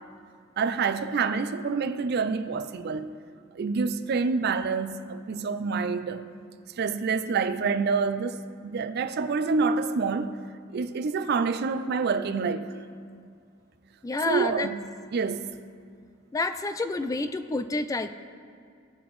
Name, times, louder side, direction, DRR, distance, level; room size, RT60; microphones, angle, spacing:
voice 1, 0.6-3.2 3.5-6.3 6.8-10.4 10.7-12.7 14.3-14.8 15.1-15.5, right 5 dB, 55° right, 0.4 m, -27 dB
voice 2, 14.0-14.7 16.3-18.1, left 3 dB, 15° left, 0.3 m, -29 dB
17.0 x 6.0 x 3.1 m
head